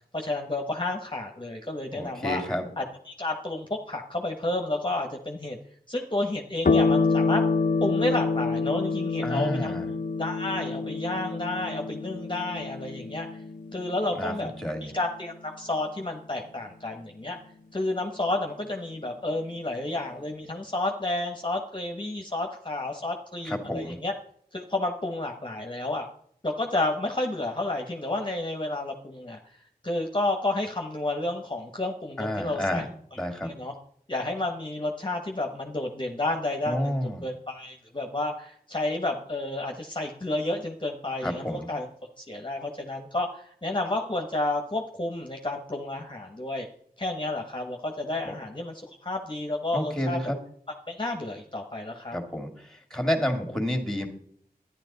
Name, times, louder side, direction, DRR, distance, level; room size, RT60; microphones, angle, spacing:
voice 1, 0.1-2.4 2.8-5.6 5.9-7.4 7.8-13.3 13.7-14.5 14.8-17.4 17.7-24.1 24.5-26.1 26.4-29.5 29.8-32.8 33.4-33.7 34.1-41.9 42.2-46.7 47.0-50.2 50.9-52.2, left 2 dB, 30° left, 3 dB, 1.2 m, -31 dB
voice 2, 1.9-2.7 9.2-9.9 14.1-15.0 23.4-24.0 32.2-32.9 33.2-33.5 36.7-37.3 41.2-41.7 48.2-48.3 49.7-50.4 52.1-54.1, equal, 5° left, 6 dB, 2.1 m, -30 dB
sound 1, 6.6-15.5, left 4 dB, 55° left, 0.7 m, -27 dB
12.0 x 10.0 x 4.0 m, 0.64 s
wide cardioid pair, 60°, 16 cm